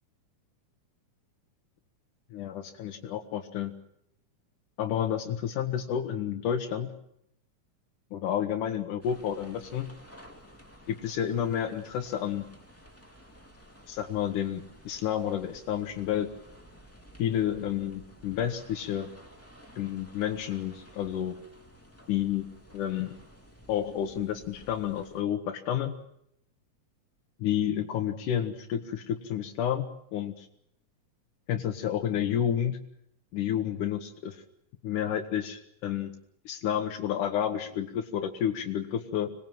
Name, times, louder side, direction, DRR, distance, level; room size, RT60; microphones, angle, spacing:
voice 1, 2.3-3.7 4.8-6.9 8.1-9.9 10.9-12.4 13.9-16.3 17.2-19.1 19.8-21.4 22.1-22.5 22.7-23.1 23.7-26.0 27.4-30.5 31.5-32.8 33.3-34.4 34.8-36.1 36.5-39.3, left 10 dB, 80° left, 5 dB, 2.7 m, -30 dB
sound 1, 9.0-25.2, equal, 5° left, 2.2 m, -53 dB
25.5 x 20.0 x 7.5 m, 0.76 s
omnidirectional pair, 3.6 m